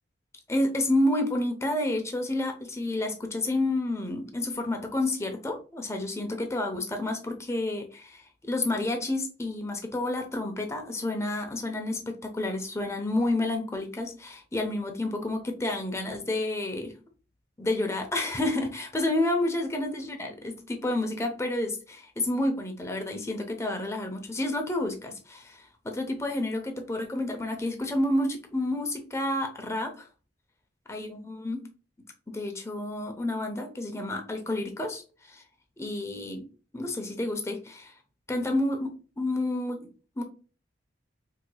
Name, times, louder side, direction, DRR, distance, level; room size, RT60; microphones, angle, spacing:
voice 1, 0.5-16.9 17.6-30.1 30.9-31.6 32.3-35.4 35.8-36.5 36.7-37.9 38.3-39.9 40.2-40.3, left 1 dB, 15° left, 4 dB, 0.6 m, -30 dB
4.6 x 2.8 x 2.2 m, 0.36 s
head